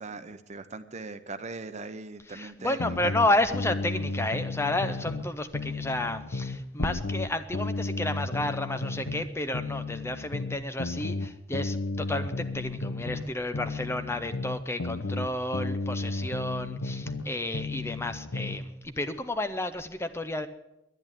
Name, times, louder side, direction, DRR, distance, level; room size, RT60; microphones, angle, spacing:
voice 1, 0.0-3.1, right 3 dB, 35° right, 11 dB, 0.8 m, -40 dB
voice 2, 2.3-20.5, left 1 dB, 15° left, 10 dB, 0.6 m, -31 dB
sound 1, 2.8-5.3 5.5-9.3 9.5-13.3 13.5-17.3 17.5-18.6, left 3 dB, 80° left, 0.8 m, -33 dB
11.0 x 10.5 x 9.0 m, 0.90 s
head